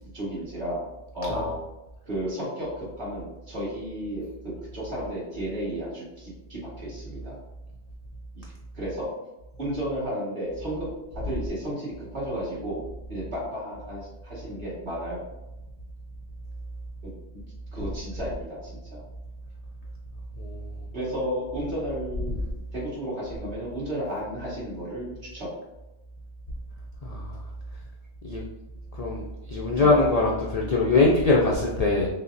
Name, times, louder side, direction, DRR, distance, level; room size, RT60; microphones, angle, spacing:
voice 1, 0.1-0.9 1.1-1.6 2.0-7.4 8.4-9.1 9.6-10.9 11.1-12.8 13.1-15.2 17.0-17.1 17.7-19.0 20.9-22.3 22.7-25.5 29.8-30.0, equal, 40° right, -8 dB, 1.7 m, -33 dB
voice 2, 20.4-20.8 27.0-27.4 28.2-28.4 28.9-32.1, left 3 dB, 75° left, -2 dB, 0.3 m, -23 dB
5.6 x 2.1 x 2.6 m, 0.95 s
omnidirectional pair, 1.2 m